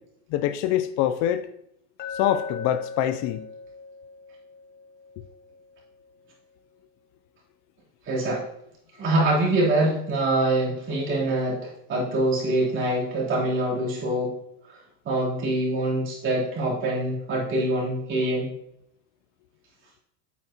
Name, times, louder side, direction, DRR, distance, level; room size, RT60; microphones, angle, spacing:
voice 1, 0.3-1.5 2.2-3.5, left 11 dB, 55° left, 0.5 m, -24 dB
Glass, 2.0-6.1, left 4 dB, 30° left, 0.9 m, -39 dB
voice 2, 8.1-8.4 9.0-14.3 15.0-18.5, right 1 dB, 35° right, 3.4 m, -24 dB
8.9 x 8.3 x 2.9 m
supercardioid pair, 140°, 33 cm